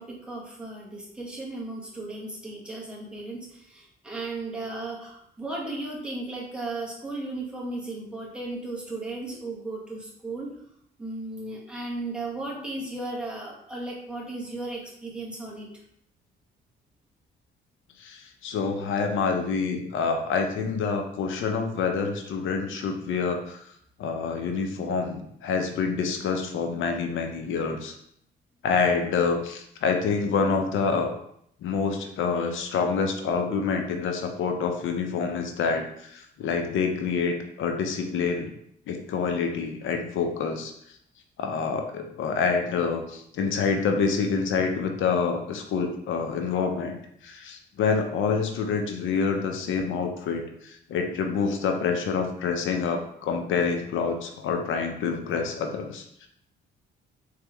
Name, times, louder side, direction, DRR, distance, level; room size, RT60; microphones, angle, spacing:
voice 1, 0.0-10.5 11.0-15.7, right 2 dB, 5° right, -4 dB, 1.5 m, -35 dB
voice 2, 18.0-23.6 24.0-27.9 28.6-31.1 31.6-38.5 38.9-40.7 41.4-47.0 47.2-56.0, left 5 dB, 80° left, 4 dB, 0.8 m, -27 dB
4.1 x 3.3 x 3.5 m, 0.70 s
cardioid pair, 90°, 20 cm